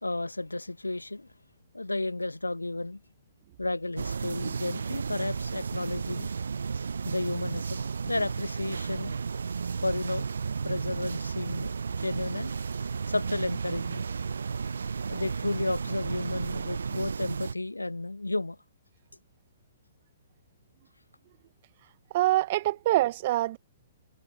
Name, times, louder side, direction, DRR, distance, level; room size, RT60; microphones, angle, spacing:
voice 1, 0.0-1.3 1.7-3.0 3.6-6.3 7.0-9.1 9.8-10.3 10.6-11.7 12.0-12.5 13.1-14.0 15.1-18.6, left 2 dB, 85° left, 1.2 m, -32 dB
sound 1, 4.0-17.5, right 5 dB, 70° right, 0.7 m, -33 dB
voice 2, 22.1-23.6, right 16 dB, 45° right, 1.2 m, -25 dB
figure-of-eight pair, 120°, 0 cm